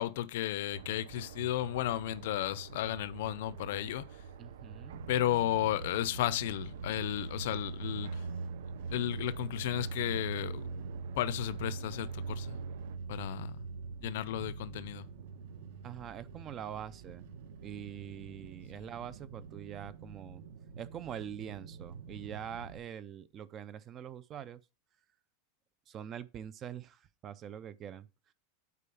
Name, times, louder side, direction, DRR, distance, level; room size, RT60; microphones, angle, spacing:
voice 1, 0.0-4.0 5.1-8.2 8.9-10.6 11.2-12.6 13.1-13.6 14.0-15.0, left 13 dB, 60° left, 0.6 m, -33 dB
sound 1, 0.7-13.0, right 6 dB, 90° right, 0.9 m, -48 dB
voice 2, 4.4-5.1 15.8-17.3 17.6-20.4 20.8-24.6 25.9-28.1, right 9 dB, 20° right, 0.4 m, -44 dB
sound 2, 4.9-22.8, right 4 dB, 65° right, 1.5 m, -43 dB
8.4 x 4.6 x 7.0 m
supercardioid pair, 180°, 0 cm